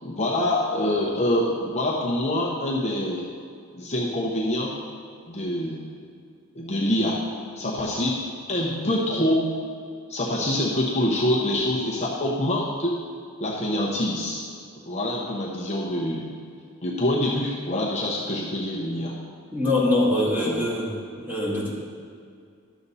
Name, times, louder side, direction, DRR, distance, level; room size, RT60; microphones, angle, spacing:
voice 1, 0.0-3.3 3.7-4.8 5.3-5.9 6.5-7.2 7.6-9.5 10.1-13.0 13.4-14.4 14.9-16.3 16.8-19.1 20.4-20.6, left 1 dB, 30° left, -4 dB, 0.9 m, -25 dB
voice 2, 19.5-20.9 21.3-21.7, left 1 dB, 10° right, -6 dB, 1.9 m, -23 dB
11.0 x 6.9 x 4.1 m, 2.3 s
head